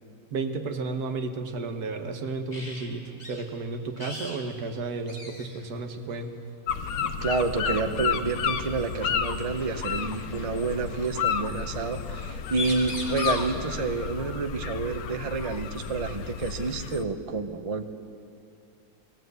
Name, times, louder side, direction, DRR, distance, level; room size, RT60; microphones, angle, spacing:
voice 1, 0.3-6.3, right 3 dB, 80° right, 6 dB, 1.7 m, -33 dB
sound 1, 2.5-2.9 3.2-3.4 4.0-4.4 4.7-4.8 5.1-5.6 6.8-7.0 8.7-8.8 10.0-10.8 12.2-12.3 12.5-13.5 15.4-15.5 16.0-17.0, left 2 dB, 25° left, 2.6 m, -38 dB
Catterline Harbour, 6.7-17.0, left 7 dB, 70° left, 1.2 m, -31 dB
voice 2, 6.9-17.8, right 4 dB, 30° right, 7 dB, 0.7 m, -29 dB
18.0 x 18.0 x 8.1 m, 2.6 s
omnidirectional pair, 1.6 m